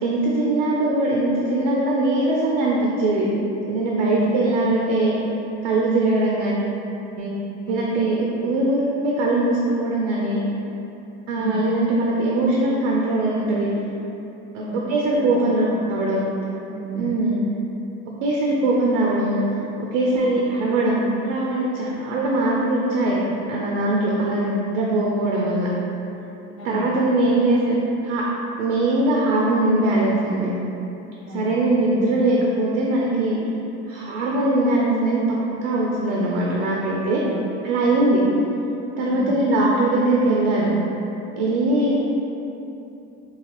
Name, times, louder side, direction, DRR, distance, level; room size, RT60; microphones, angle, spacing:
voice 1, 0.0-3.3 3.7-5.2 5.6-6.7 7.2-7.3 7.7-10.4 11.3-13.7 14.5-14.6 14.9-16.2 17.0-17.4 18.2-19.4 19.8-23.2 23.5-25.7 26.6-27.8 28.0-28.2 28.6-30.5 31.3-33.4 33.9-35.2 35.6-37.2 37.6-38.2 39.0-40.7 41.4-41.9, right 2 dB, 80° right, -3 dB, 0.5 m, -21 dB
voice 2, 4.1-4.4 7.7-8.1 11.3-11.7 14.6-14.8 15.1-15.9 16.6-17.1 20.1-20.4 26.6-27.0 27.3-27.5 31.2-31.6 31.9-32.2 36.4-37.5 39.1-39.4 41.8-42.0, equal, 70° left, -7 dB, 0.9 m, -34 dB
2.8 x 2.3 x 2.9 m, 2.9 s
hypercardioid pair, 70°, 36 cm